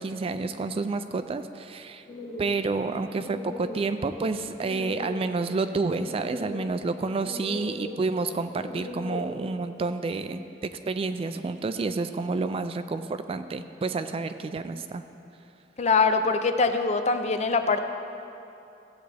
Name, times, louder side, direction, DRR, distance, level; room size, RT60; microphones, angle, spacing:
voice 1, 0.0-2.0 2.4-15.0, right 3 dB, 30° right, 10 dB, 0.3 m, -29 dB
sound 1, 2.1-9.5, left 1 dB, 55° left, 1.4 m, -40 dB
voice 2, 15.8-17.8, left 4 dB, 40° left, 8 dB, 0.5 m, -23 dB
15.5 x 7.8 x 3.3 m, 2.8 s
head